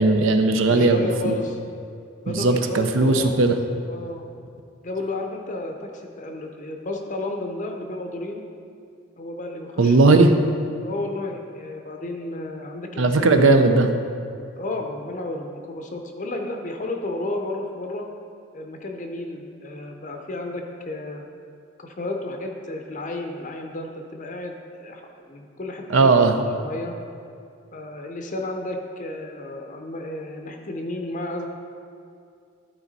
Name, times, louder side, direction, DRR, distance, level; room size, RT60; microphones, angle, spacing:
voice 1, 0.0-1.0 1.2-1.4 2.3-3.6 9.8-10.3 13.0-13.9 25.9-26.4, right 3 dB, 70° right, 6 dB, 0.6 m, -17 dB
voice 2, 0.7-1.6 2.2-4.2 4.8-8.4 9.2-10.2 10.8-13.4 14.6-18.1 18.5-21.3 21.8-25.0 25.3-27.0 27.7-31.5, left 2 dB, 40° left, 3 dB, 0.6 m, -32 dB
12.0 x 4.4 x 4.1 m, 2.4 s
head